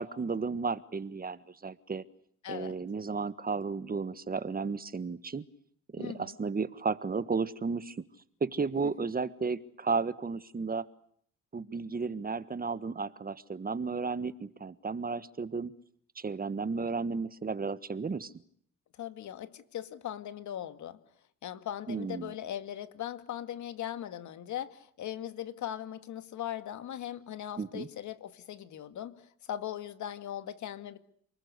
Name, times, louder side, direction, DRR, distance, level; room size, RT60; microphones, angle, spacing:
voice 1, 0.0-2.0 2.5-5.4 5.9-8.0 8.4-10.9 11.5-15.7 16.2-18.3 21.9-22.3 27.6-27.9, right 4 dB, 30° right, 14 dB, 1.5 m, -33 dB
voice 2, 2.4-2.8 6.0-6.4 8.8-8.9 19.0-21.0 21.4-29.2 29.5-31.0, left 11 dB, 70° left, 11 dB, 2.1 m, -39 dB
29.5 x 20.5 x 8.3 m, 0.64 s
cardioid pair, 90°, 30 cm